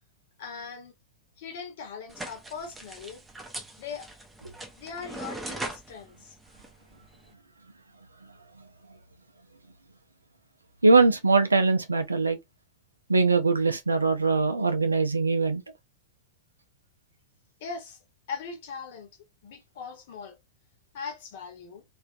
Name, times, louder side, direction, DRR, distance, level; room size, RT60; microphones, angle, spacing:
voice 1, 0.4-0.9 1.4-3.2 3.8-4.2 4.8-6.4 17.6-18.0 18.3-19.1 19.4-20.4 20.9-21.8, left 5 dB, 55° left, 0.9 m, -40 dB
sound 1, 2.1-7.3, right 2 dB, 10° right, 0.5 m, -41 dB
voice 2, 10.8-12.4 13.1-15.6, right 3 dB, 80° right, 0.4 m, -22 dB
2.5 x 2.3 x 2.3 m
figure-of-eight pair, 90°, 0 cm